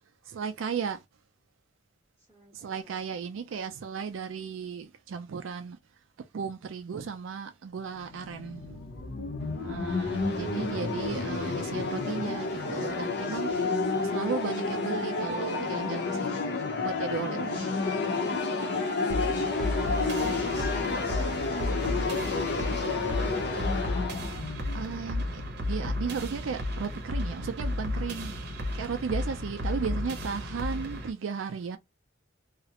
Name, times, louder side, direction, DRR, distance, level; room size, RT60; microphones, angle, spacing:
voice 1, 0.2-1.0 2.5-5.8 6.2-8.8 9.6-13.7 14.0-16.5 16.8-17.8 24.7-31.8, right 6 dB, 80° right, 0.4 m, -35 dB
voice 2, 2.3-2.9, equal, 10° right, 0.8 m, -55 dB
sound 1, 8.0-25.8, left 3 dB, 55° left, 0.6 m, -30 dB
sound 2, 19.1-31.1, left 1 dB, 55° right, 0.7 m, -33 dB
2.4 x 2.0 x 2.8 m
head